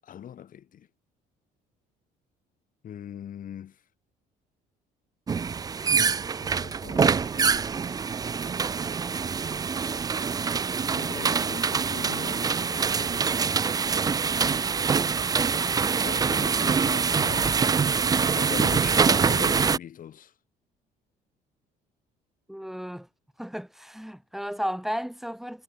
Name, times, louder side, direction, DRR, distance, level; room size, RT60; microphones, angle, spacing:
voice 1, 0.0-0.9 2.8-3.8 6.4-7.5 10.9-14.3 16.0-17.5 18.3-20.3, left 9 dB, 55° left, 7.7 m, -41 dB
sound 1, 5.3-19.8, right 6 dB, 20° right, 0.4 m, -25 dB
voice 2, 22.5-23.1 23.4-25.6, equal, ahead, 4.5 m, -34 dB
cardioid pair, 110°, 17 cm